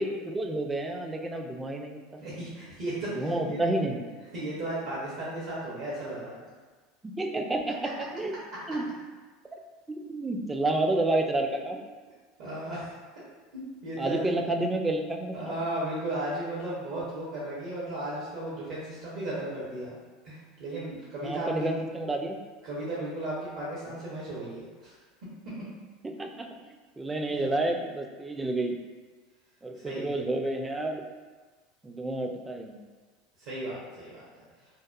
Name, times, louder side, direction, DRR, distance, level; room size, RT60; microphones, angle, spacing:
voice 1, 0.0-2.2 3.2-4.0 7.0-8.4 8.7-8.9 9.5-9.6 9.9-11.8 14.0-15.5 21.2-22.4 26.0-26.7 27.0-28.7 29.6-31.0 31.8-32.8, right 2 dB, 15° right, 4 dB, 0.3 m, -30 dB
voice 2, 2.2-3.6 4.3-6.4 12.4-12.9 13.5-14.4 15.3-20.0 20.2-21.7 22.6-24.9 27.3-27.4 29.7-30.1 33.4-34.2, right 1 dB, 65° right, -8 dB, 0.7 m, -35 dB
2.8 x 2.0 x 2.3 m, 1.4 s
hypercardioid pair, 90°, 0 cm